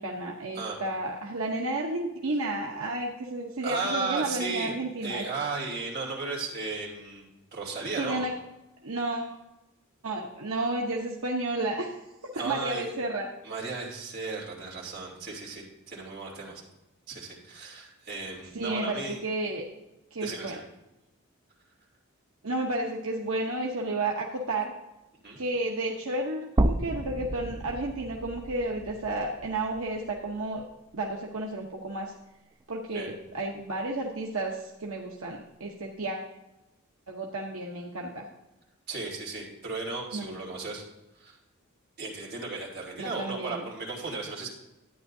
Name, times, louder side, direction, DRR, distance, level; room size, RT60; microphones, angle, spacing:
voice 1, 0.0-5.2 8.0-8.3 8.8-9.3 10.0-11.9 12.2-13.3 18.5-19.6 20.1-20.6 22.4-24.7 25.4-30.6 30.9-32.1 32.7-36.3 37.1-38.3 40.1-40.3 43.0-43.7, right 2 dB, 75° right, -1 dB, 0.9 m, -32 dB
voice 2, 3.6-4.7 5.0-8.2 12.3-12.8 13.4-16.6 17.1-19.2 20.2-20.6 25.2-25.4 32.9-33.1 38.9-40.8 41.1-41.4 42.0-44.5, right 3 dB, 45° right, -3 dB, 3.0 m, -35 dB
sound 1, 26.6-30.7 31.1-31.2 32.6-32.7, right 1 dB, 15° right, 0.3 m, -32 dB
12.0 x 9.5 x 2.7 m, 0.98 s
head